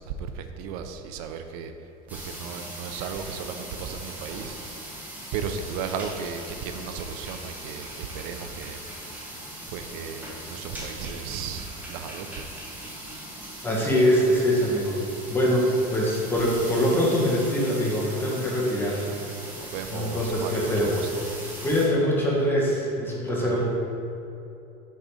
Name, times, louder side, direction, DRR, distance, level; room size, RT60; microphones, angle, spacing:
voice 1, 0.0-1.7 2.1-4.6 4.9-5.1 5.3-8.8 9.7-12.5 19.6-21.2 23.4-23.7, right 6 dB, 75° right, 7 dB, 0.5 m, -35 dB
sound 1, 2.1-21.9, right 1 dB, 10° right, 1.3 m, -40 dB
voice 2, 13.6-15.0 15.3-19.1 19.5-21.3 21.6-23.7, equal, 10° left, -4 dB, 1.4 m, -24 dB
6.4 x 3.9 x 4.9 m, 2.8 s
supercardioid pair, 135°, 19 cm